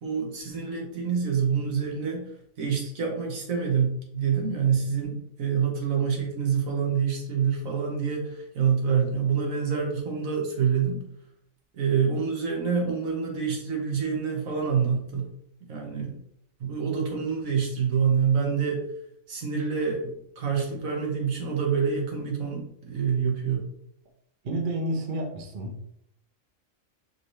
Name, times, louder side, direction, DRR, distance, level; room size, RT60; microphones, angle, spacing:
voice 1, 0.0-2.3 2.6-11.0 11.7-15.3 15.7-16.1 16.6-18.8 19.3-23.6, right 6 dB, 85° right, 0 dB, 1.6 m, -26 dB
voice 2, 24.4-25.8, right 1 dB, 45° right, 3 dB, 0.8 m, -30 dB
5.1 x 3.3 x 3.1 m, 0.70 s
omnidirectional pair, 1.4 m